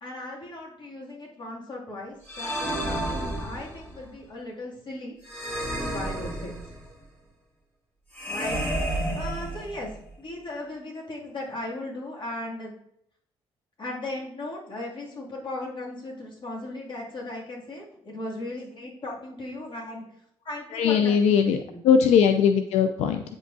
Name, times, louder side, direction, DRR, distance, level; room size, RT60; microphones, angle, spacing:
voice 1, 0.0-5.2 5.8-6.6 8.3-8.6 8.8-12.7 13.8-20.0 20.4-21.8, left 2 dB, 45° left, -3 dB, 2.4 m, -37 dB
sound 1, 2.3-4.0 5.3-6.9 8.1-10.0, right 1 dB, 20° left, 2.7 m, -31 dB
voice 2, 20.7-21.6 21.8-23.2, left 7 dB, 80° left, 8 dB, 0.4 m, -20 dB
8.5 x 5.3 x 2.6 m, 0.74 s
supercardioid pair, 70°, 11 cm